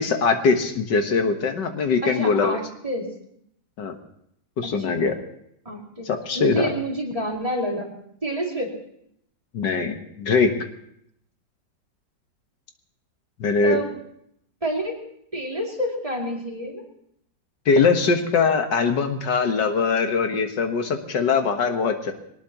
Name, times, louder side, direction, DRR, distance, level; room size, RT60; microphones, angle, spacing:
voice 1, 0.0-2.6 3.8-4.0 4.6-5.2 6.1-6.7 9.5-10.5 13.4-13.8 17.7-22.1, left 5 dB, 75° left, 6 dB, 1.9 m, -21 dB
voice 2, 2.0-3.1 4.9-5.0 5.7-6.1 6.3-7.9 8.2-8.7 13.6-13.9 14.6-15.0 15.3-16.8, right 1 dB, 20° right, -1 dB, 2.5 m, -28 dB
22.0 x 19.0 x 2.9 m, 0.72 s
omnidirectional pair, 2.0 m